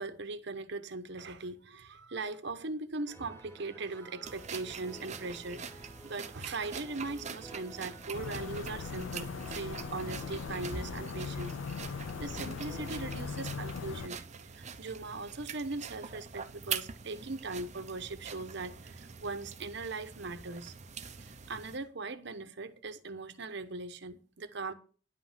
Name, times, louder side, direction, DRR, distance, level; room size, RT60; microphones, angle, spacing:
voice 1, 0.0-11.6 12.2-20.7 21.2-24.7, right 3 dB, 65° right, 1.1 m, -40 dB
sound 1, 3.1-13.3, right 2 dB, 15° left, 3.1 m, -53 dB
sound 2, 4.2-21.8, right 6 dB, 40° right, 0.8 m, -44 dB
sound 3, 8.1-14.1, left 5 dB, 85° left, 0.4 m, -39 dB
10.5 x 5.7 x 7.4 m
head